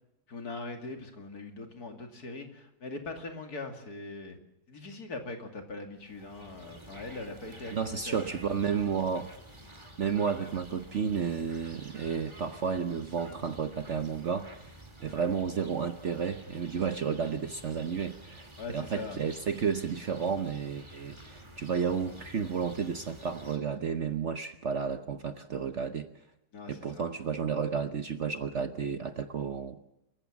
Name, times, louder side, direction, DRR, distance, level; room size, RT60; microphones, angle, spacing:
voice 1, 0.3-4.4 4.7-8.4 18.6-19.2 26.5-27.1, left 3 dB, 60° left, 5 dB, 3.0 m, -41 dB
sound 1, 6.0-23.6, equal, 15° right, 2.5 m, -50 dB
voice 2, 7.7-9.3 10.0-14.7 15.0-26.1 26.7-29.8, right 6 dB, 50° right, 9 dB, 1.0 m, -32 dB
27.5 x 15.0 x 7.2 m, 0.86 s
omnidirectional pair, 1.9 m